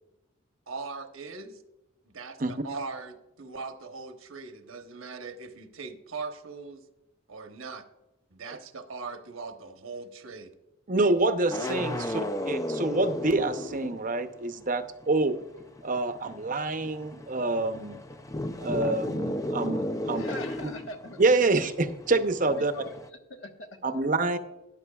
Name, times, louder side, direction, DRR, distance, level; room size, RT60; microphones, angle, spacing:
voice 1, 0.7-1.6 2.0-6.8 7.3-7.8 8.3-10.5, right 4 dB, 85° right, 1.0 m, -40 dB
voice 2, 10.9-15.4 15.8-18.0 18.6-20.3 20.6-20.7 21.2-22.7 23.8-24.4, right 2 dB, 40° right, 0.7 m, -27 dB
sound 1, 11.5-14.4 14.6-23.1, left 1 dB, 15° left, 0.4 m, -34 dB
voice 3, 20.1-21.5 22.4-23.9, left 1 dB, 70° left, 1.2 m, -42 dB
13.5 x 10.5 x 2.3 m
head